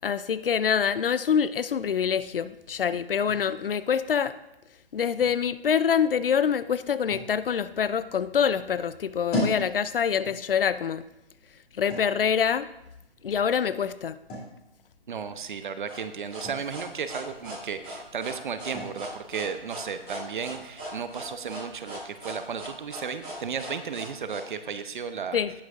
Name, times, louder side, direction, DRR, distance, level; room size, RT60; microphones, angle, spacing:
voice 1, 0.0-4.4 4.9-11.0 11.8-12.7 13.2-14.2 25.3-25.5, left 7 dB, 60° left, 16 dB, 0.6 m, -25 dB
sound 1, 1.8-21.4, left 1 dB, 20° left, 3.0 m, -41 dB
voice 2, 15.1-25.4, right 6 dB, 50° right, 10 dB, 0.9 m, -34 dB
sound 2, 15.9-24.4, right 1 dB, ahead, 0.4 m, -39 dB
18.0 x 6.1 x 2.6 m, 0.90 s
figure-of-eight pair, 145°, 31 cm